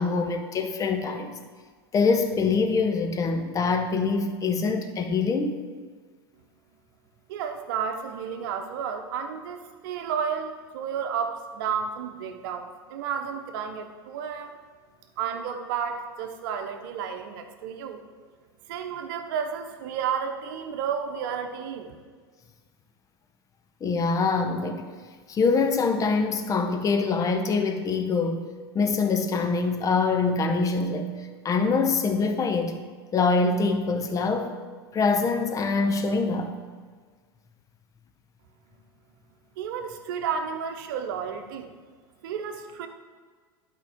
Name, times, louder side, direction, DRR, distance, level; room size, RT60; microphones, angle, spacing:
voice 1, 0.0-1.4 1.9-5.6 23.8-24.9 25.3-28.4 28.7-31.1 31.4-32.8 33.1-34.5 34.9-36.5, left 4 dB, 25° left, 0.9 m, -24 dB
voice 2, 7.3-14.6 15.2-18.0 18.7-22.0 39.6-41.7 42.2-42.9, right 7 dB, 60° right, 0.9 m, -32 dB
11.5 x 4.6 x 3.7 m
figure-of-eight pair, 90°, 13 cm